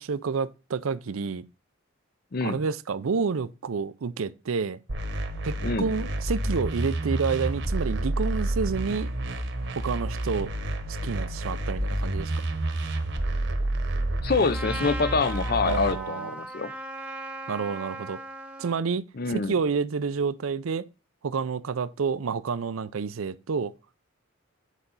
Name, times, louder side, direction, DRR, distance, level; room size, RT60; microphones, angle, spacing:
voice 1, 0.0-1.4 2.4-4.8 5.4-9.1 9.7-10.5 11.0-12.3 15.6-16.3 17.5-18.2 18.6-19.0 19.3-20.8 21.2-23.7, right 5 dB, 80° right, 0.5 m, -29 dB
voice 2, 2.3-2.6 5.6-5.9 14.2-16.7 19.2-19.6, left 4 dB, 45° left, 0.6 m, -26 dB
sound 1, 4.9-15.9, right 1 dB, 55° right, 1.2 m, -29 dB
Trumpet, 14.5-18.8, right 1 dB, 5° right, 0.9 m, -38 dB
8.2 x 5.0 x 4.0 m
head